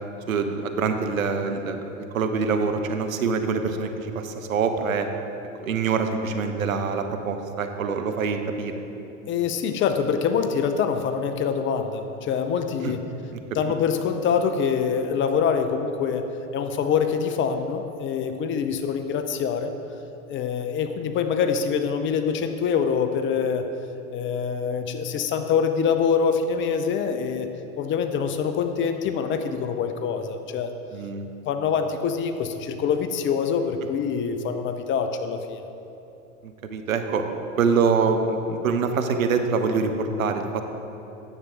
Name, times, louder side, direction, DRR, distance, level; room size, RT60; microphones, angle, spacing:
voice 1, 0.3-1.8 2.1-5.1 5.6-8.7 12.8-12.9 13.6-13.7 30.9-31.3 36.4-37.2 37.6-40.6, right 5 dB, 80° right, 6 dB, 0.8 m, -25 dB
voice 2, 9.3-13.0 13.5-16.3 16.5-19.7 20.3-23.7 24.1-27.5 27.8-30.7 31.4-35.6, left 6 dB, 30° left, 8 dB, 0.6 m, -25 dB
9.8 x 7.1 x 3.8 m, 2.9 s
hypercardioid pair, 85°, 40 cm